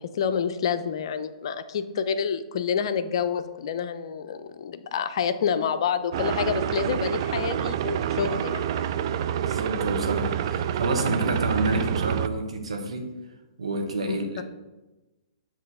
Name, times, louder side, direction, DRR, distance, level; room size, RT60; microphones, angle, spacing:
voice 1, 0.0-8.6 14.1-14.2, left 7 dB, 55° left, 11 dB, 0.5 m, -28 dB
sound 1, 6.1-12.3, right 9 dB, 50° right, 0.4 m, -27 dB
voice 2, 9.3-13.2 13.6-14.4, right 2 dB, 80° right, 3 dB, 1.2 m, -29 dB
7.6 x 3.1 x 5.4 m, 1.1 s
hypercardioid pair, 125°, 3 cm